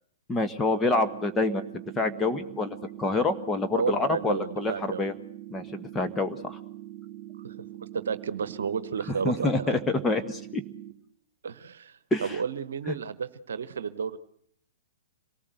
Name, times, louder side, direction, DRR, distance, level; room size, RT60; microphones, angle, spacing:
voice 1, 0.3-5.1 5.5-6.6 9.2-10.6 12.1-12.4 12.9-13.0, left 3 dB, 15° left, 6 dB, 1.4 m, -27 dB
sound 1, 0.9-10.9, right 14 dB, 40° right, 2.2 m, -43 dB
voice 2, 3.7-5.1 7.4-7.5 7.9-9.8 11.4-14.2, right 6 dB, 70° right, 15 dB, 1.0 m, -32 dB
26.0 x 19.0 x 8.0 m, 0.68 s
figure-of-eight pair, 110°, 0 cm